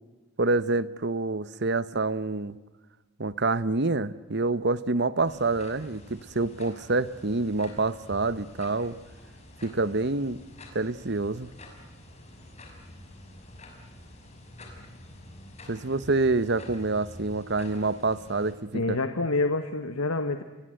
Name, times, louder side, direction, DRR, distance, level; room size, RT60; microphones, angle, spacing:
voice 1, 0.4-2.6 3.2-9.0 9.6-10.4 10.7-11.5 15.7-19.0, right 3 dB, 50° right, 16 dB, 1.0 m, -27 dB
sound 1, 5.2-18.5, left 1 dB, 30° left, 5.9 m, -48 dB
voice 2, 18.7-20.4, left 2 dB, 85° left, 8 dB, 1.6 m, -27 dB
29.5 x 22.0 x 7.9 m, 1.2 s
head